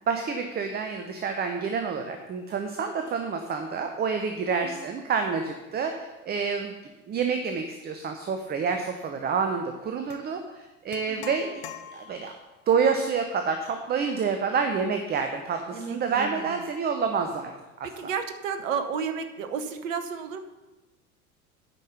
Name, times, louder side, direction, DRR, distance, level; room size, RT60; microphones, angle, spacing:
voice 1, 0.1-6.7 7.1-11.6 11.9-12.3 12.7-17.5 17.8-17.9, right 5 dB, 20° right, 6 dB, 0.7 m, -28 dB
sound 1, 10.1-10.3 10.9-12.4, left 10 dB, 50° left, 0.9 m, -43 dB
voice 2, 15.7-16.6 18.0-20.4, right 6 dB, 60° right, 8 dB, 1.0 m, -32 dB
9.1 x 5.5 x 6.9 m, 1.1 s
figure-of-eight pair, 75°, 43 cm